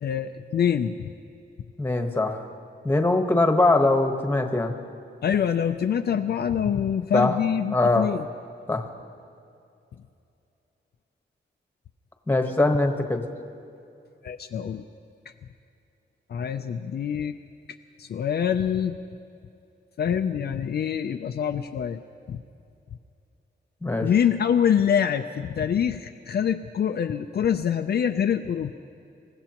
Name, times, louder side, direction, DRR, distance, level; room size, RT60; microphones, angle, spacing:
voice 1, 0.0-1.1 5.2-8.3 14.2-14.8 16.3-17.3 18.0-19.0 20.0-22.0 22.3-22.4 24.0-28.7, left 8 dB, 60° left, 6 dB, 0.5 m, -25 dB
voice 2, 1.8-2.4 2.8-4.7 7.1-7.3 7.7-8.1 8.7-8.8 12.3-13.2 23.8-24.1, left 2 dB, 10° left, 4 dB, 1.2 m, -22 dB
27.0 x 16.0 x 3.0 m, 2.6 s
wide cardioid pair, 130°, 19 cm